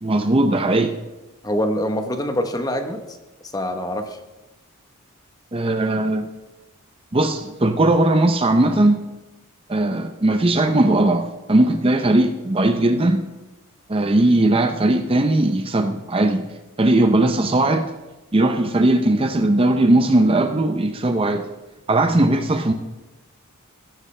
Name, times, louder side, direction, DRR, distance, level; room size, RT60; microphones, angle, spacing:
voice 1, 0.0-0.9 5.5-6.3 7.1-9.0 9.7-13.2 13.9-16.5 16.8-17.9 18.3-21.4 21.9-22.7, right 2 dB, 25° right, 7 dB, 0.6 m, -18 dB
voice 2, 1.4-3.0 3.4-4.2, equal, 15° left, 7 dB, 1.0 m, -24 dB
15.5 x 14.0 x 3.3 m, 1.1 s
head